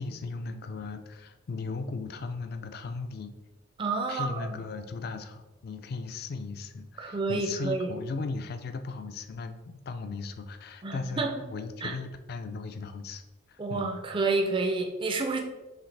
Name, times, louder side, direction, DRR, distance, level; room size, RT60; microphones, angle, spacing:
voice 1, 0.0-3.3 4.1-13.2 13.5-13.9, left 4 dB, 50° left, 9 dB, 0.3 m, -37 dB
voice 2, 3.8-4.6 7.0-7.9 10.8-11.3 11.8-11.9 13.6-15.4, right 3 dB, 25° right, 3 dB, 0.4 m, -29 dB
4.9 x 3.2 x 3.2 m, 1.1 s
head